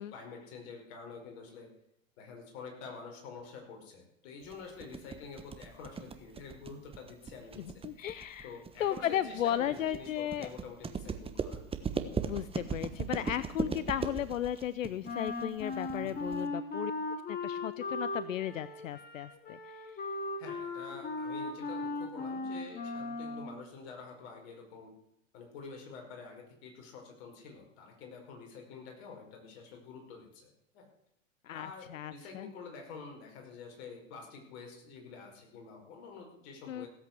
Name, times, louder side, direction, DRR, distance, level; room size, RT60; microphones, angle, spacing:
voice 1, 0.0-1.7 2.2-7.7 8.0-8.1 8.4-11.6 16.0-16.3 20.4-24.9 25.3-30.9 31.5-36.9, left 5 dB, 55° left, 2 dB, 5.2 m, -48 dB
sound 1, 4.5-16.5, right 5 dB, 15° right, 1.3 m, -38 dB
voice 2, 7.8-8.5 8.8-10.5 12.2-16.9 17.3-20.0 31.4-32.5 36.7-36.9, left 11 dB, 75° left, 16 dB, 0.7 m, -35 dB
Wind instrument woodwind instrument, 15.0-23.6, left 3 dB, 25° left, 2.6 m, -37 dB
16.5 x 8.5 x 7.9 m, 0.79 s
hypercardioid pair, 100°, 39 cm